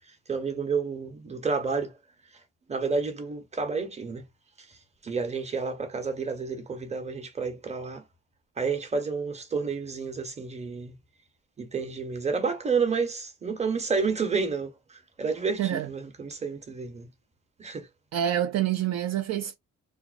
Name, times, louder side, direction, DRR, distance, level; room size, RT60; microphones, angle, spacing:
voice 1, 0.3-1.9 2.7-4.2 4.7-4.8 5.0-8.0 8.6-11.0 11.6-17.1 17.6-17.9, right 5 dB, 20° right, 0.8 m, -30 dB
voice 2, 18.1-19.6, right 11 dB, 60° right, 0.4 m, -27 dB
2.4 x 2.1 x 2.4 m
cardioid pair, 90°, 30 cm